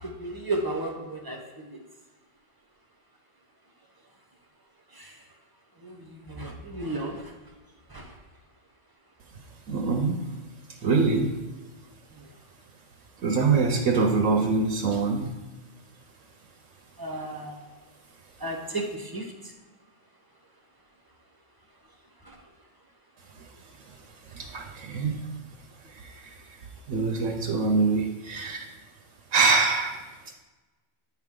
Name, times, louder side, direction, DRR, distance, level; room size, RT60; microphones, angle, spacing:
voice 1, 0.0-1.4 1.7-1.8 5.0-5.1 5.8-6.0 6.3-7.2 7.9-8.1 17.0-17.6 18.4-19.3, right 2 dB, 20° right, 1 dB, 0.9 m, -33 dB
voice 2, 9.7-10.2 10.8-11.4 13.2-15.3 23.4-23.5 23.8-24.0 24.2-25.3 25.8-26.6 26.9-28.7 29.3-30.0, right 4 dB, 80° right, 2 dB, 1.1 m, -25 dB
9.1 x 4.6 x 3.7 m, 1.2 s
omnidirectional pair, 1.3 m